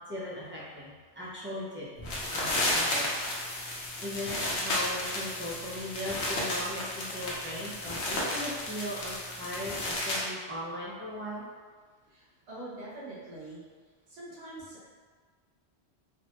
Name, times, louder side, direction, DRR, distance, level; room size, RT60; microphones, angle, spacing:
voice 1, 0.1-1.9 2.3-3.1 4.0-11.4, left 1 dB, 15° right, -7 dB, 0.4 m, -38 dB
sound 1, 2.0-10.2, left 1 dB, 80° left, 1.0 m, -33 dB
voice 2, 12.1-13.6 14.1-14.9, right 2 dB, 80° right, -7 dB, 1.2 m, -44 dB
3.4 x 2.1 x 2.9 m, 1.5 s
omnidirectional pair, 1.1 m